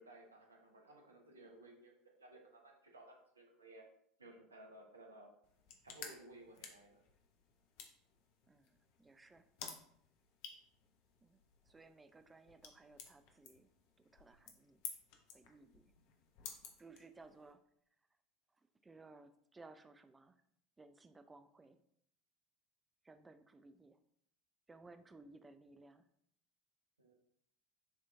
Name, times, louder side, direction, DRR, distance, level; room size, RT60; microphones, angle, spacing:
voice 1, 0.0-1.9 2.2-3.8 4.2-5.3 5.8-7.0 27.0-27.1, right 1 dB, 80° right, 1 dB, 0.7 m, -58 dB
sound 1, 5.4-17.5, left 6 dB, 55° left, 0.6 m, -55 dB
voice 2, 8.5-9.5 11.2-11.4 11.6-13.7 14.1-14.8 15.3-15.9 16.8-17.6 18.8-20.4 20.8-21.8 23.0-24.0 24.7-26.0, right 3 dB, 15° right, 10 dB, 0.4 m, -60 dB
6.7 x 2.9 x 2.3 m, 0.69 s
figure-of-eight pair, 70°, 0 cm